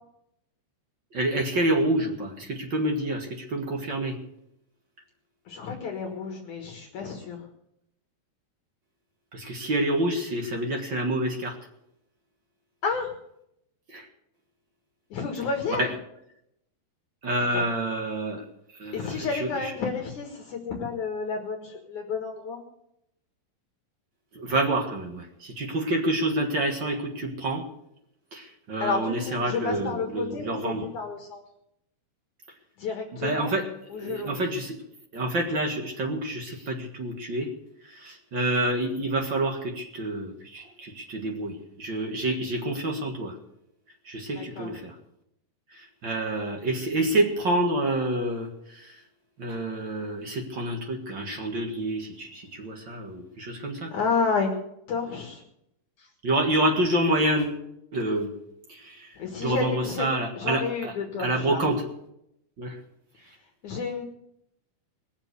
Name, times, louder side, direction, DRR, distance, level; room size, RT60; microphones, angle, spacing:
voice 1, 1.1-4.1 9.3-11.6 13.9-14.0 15.8-15.9 17.2-18.4 18.8-19.3 24.3-27.6 28.3-30.9 33.2-33.7 33.9-34.8 35.1-37.5 37.9-43.3 44.0-44.9 46.0-48.5 48.8-48.9 49.4-53.9 56.2-57.6 57.9-58.3 58.7-59.1 59.4-60.9 61.2-61.8 62.6-62.7, right 1 dB, 50° right, 2 dB, 1.4 m, -28 dB
voice 2, 5.5-7.5 12.8-13.1 15.1-15.9 17.4-17.6 18.9-22.6 28.8-31.4 32.8-33.6 33.9-34.5 44.3-44.8 53.9-54.6 54.9-55.4 56.0-56.1 59.2-60.1 60.4-61.7 63.6-64.0, left 5 dB, 60° left, 2 dB, 2.7 m, -31 dB
21.5 x 7.4 x 6.8 m, 0.79 s
omnidirectional pair, 4.6 m